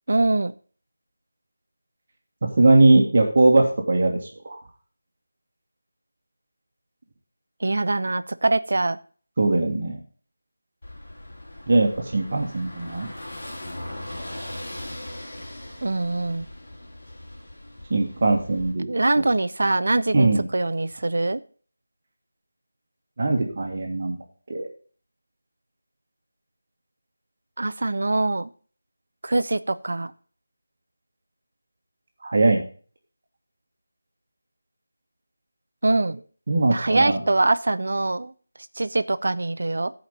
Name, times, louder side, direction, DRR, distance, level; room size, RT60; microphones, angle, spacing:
voice 1, 0.1-0.5 7.6-9.0 15.8-16.5 18.9-21.4 27.6-28.5 29.2-30.1 35.8-36.2 36.7-38.3 38.8-39.9, right 2 dB, 60° right, 14 dB, 0.6 m, -23 dB
voice 2, 2.4-4.6 9.4-10.0 11.7-13.1 17.9-18.9 20.1-20.5 23.2-24.2 24.5-24.7 32.2-32.6 36.5-37.2, right 2 dB, 35° right, 1 dB, 1.5 m, -20 dB
Car passing by / Engine, 10.8-18.7, left 1 dB, 50° left, 3.8 m, -39 dB
11.5 x 5.2 x 5.2 m, 0.42 s
figure-of-eight pair, 175°, 0 cm